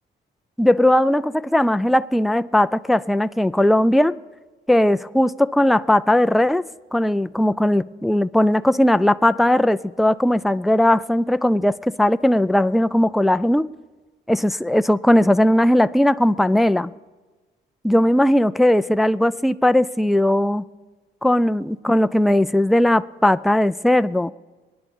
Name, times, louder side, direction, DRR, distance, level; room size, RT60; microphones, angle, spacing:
voice 1, 0.6-4.2 4.7-6.6 6.9-13.7 14.3-16.9 17.8-20.6 21.2-24.3, left 1 dB, ahead, 13 dB, 0.3 m, -18 dB
24.0 x 9.8 x 3.6 m, 1.3 s
cardioid pair, 90°, 20 cm